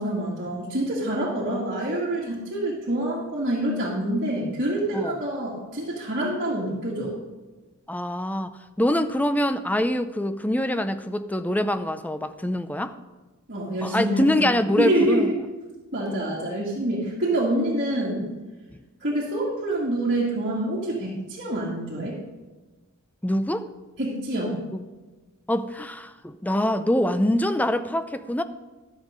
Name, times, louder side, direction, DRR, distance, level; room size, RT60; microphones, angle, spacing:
voice 1, 0.0-7.2 13.5-14.5 14.8-15.3 15.9-18.3 19.0-22.2 24.0-24.6, right 1 dB, 50° right, -6 dB, 2.1 m, -26 dB
voice 2, 7.9-12.9 13.8-15.3 23.2-23.7 24.7-24.8 25.5-28.4, left 1 dB, 5° left, 10 dB, 0.4 m, -24 dB
12.5 x 7.4 x 5.0 m, 1.2 s
head